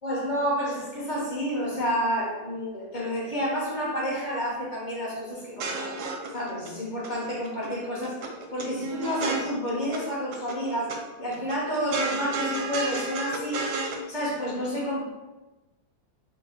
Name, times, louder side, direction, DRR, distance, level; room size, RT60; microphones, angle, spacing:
voice 1, 0.0-5.9 6.3-8.2 8.5-10.9 11.2-13.7 14.1-15.0, equal, 35° left, -6 dB, 0.8 m, -29 dB
sound 1, 5.4-6.7 7.0-7.7 8.0-10.0 10.3-11.0 11.3-14.0, right 3 dB, 70° right, 0.9 m, -32 dB
3.7 x 2.2 x 4.2 m, 1.1 s
omnidirectional pair, 2.1 m